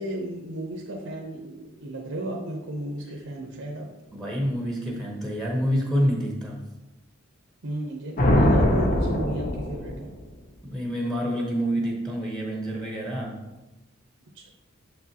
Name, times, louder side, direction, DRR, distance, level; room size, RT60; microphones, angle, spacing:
voice 1, 0.0-3.9 7.6-10.1 14.3-14.5, right 1 dB, 75° right, 0 dB, 0.8 m, -34 dB
voice 2, 4.1-6.6 10.6-13.4, equal, 5° left, -1 dB, 1.0 m, -27 dB
sound 1, 8.2-10.1, left 1 dB, 45° left, 0.8 m, -22 dB
6.8 x 6.1 x 2.9 m, 1.0 s
head